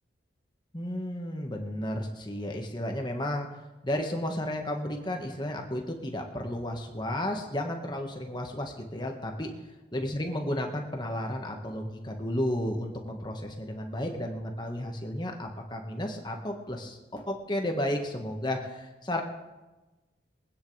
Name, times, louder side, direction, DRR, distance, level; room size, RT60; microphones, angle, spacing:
voice 1, 0.7-3.5 3.8-9.5 9.9-19.2, left 1 dB, 25° left, 2 dB, 1.5 m, -33 dB
23.5 x 9.6 x 3.4 m, 1.1 s
head